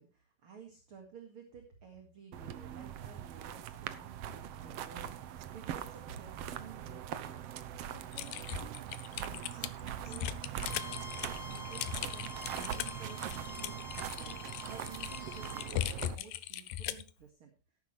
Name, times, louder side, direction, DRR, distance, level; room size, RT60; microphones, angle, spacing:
voice 1, 0.0-17.5, right 6 dB, 45° right, 3 dB, 2.6 m, -54 dB
sound 1, 2.3-16.1, right 10 dB, 75° right, 1.4 m, -42 dB
Typing, 8.1-17.1, left 12 dB, 90° left, 2.4 m, -39 dB
Bowed string instrument, 10.6-15.7, left 2 dB, 40° left, 2.4 m, -47 dB
13.5 x 12.0 x 3.3 m, 0.33 s
omnidirectional pair, 3.8 m